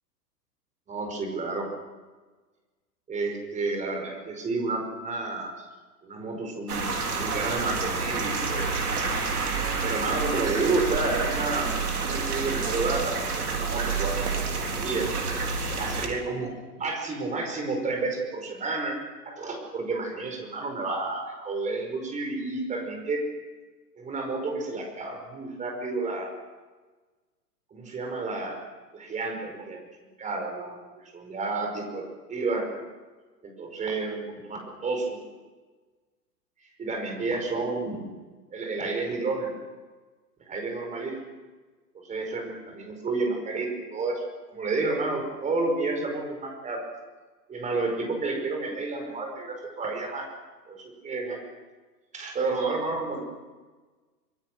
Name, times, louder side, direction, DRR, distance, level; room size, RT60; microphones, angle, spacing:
voice 1, 0.9-1.7 3.1-5.6 6.0-8.7 9.8-13.1 13.4-15.1 15.8-16.5 16.8-19.0 19.2-23.2 23.9-26.3 27.7-28.6 28.9-29.8 30.2-30.7 31.1-32.7 33.4-35.2 36.8-38.1 38.5-39.5 40.4-41.2 42.0-44.2 44.5-46.8 47.5-50.3 50.7-51.4 52.1-53.2, right 3 dB, 15° right, 3 dB, 5.2 m, -30 dB
sound 1, 6.7-16.1, right 4 dB, 65° right, 4.0 m, -28 dB
25.5 x 22.0 x 6.3 m, 1.3 s
figure-of-eight pair, 110°, 50 cm